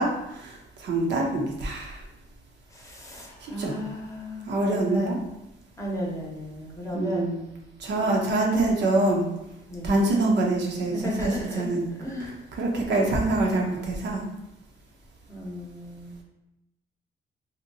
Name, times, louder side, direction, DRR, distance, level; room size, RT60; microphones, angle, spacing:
voice 1, 0.0-2.0 3.4-3.8 4.5-5.2 6.9-7.4 7.8-9.3 9.8-11.9 12.2-12.3 12.6-14.2, right 2 dB, 60° right, 0 dB, 0.6 m, -25 dB
voice 2, 2.7-5.2 5.8-7.3 9.7-10.0 10.9-12.4 15.3-16.1, equal, 15° left, -3 dB, 0.8 m, -34 dB
2.7 x 2.2 x 2.6 m, 0.88 s
cardioid pair, 90°, 20 cm